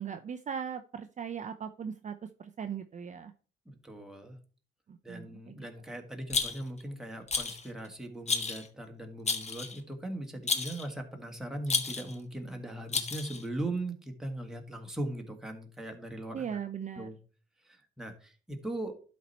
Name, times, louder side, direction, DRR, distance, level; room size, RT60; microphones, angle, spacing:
voice 1, 0.0-2.1 2.4-3.3 4.9-5.6 16.3-17.1, right 7 dB, 40° right, 7 dB, 0.6 m, -39 dB
voice 2, 3.7-4.4 5.0-16.5 17.0-17.2 17.6-19.0, right 1 dB, ahead, 2 dB, 1.8 m, -39 dB
Rattle, 6.3-6.8 7.3-7.7 8.3-8.7 9.3-9.8 10.5-10.9 11.7-12.2 12.9-13.4, left 4 dB, 35° left, 1.2 m, -31 dB
11.5 x 4.3 x 4.4 m, 0.40 s
cardioid pair, 90°, 20 cm